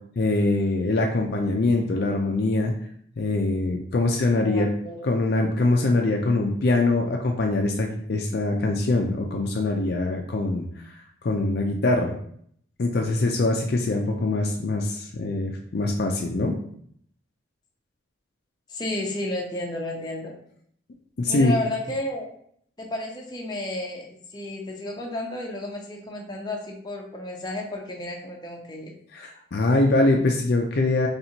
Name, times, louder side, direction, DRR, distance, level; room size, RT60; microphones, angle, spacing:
voice 1, 0.2-2.7 3.2-4.7 5.0-10.7 11.2-12.1 12.8-16.5 21.2-21.5 29.1-31.1, left 2 dB, 55° left, 2 dB, 0.4 m, -23 dB
voice 2, 4.4-5.0 18.7-20.3 21.3-22.4 22.8-28.9, left 1 dB, 20° left, -1 dB, 0.7 m, -32 dB
4.2 x 3.3 x 2.8 m, 0.64 s
head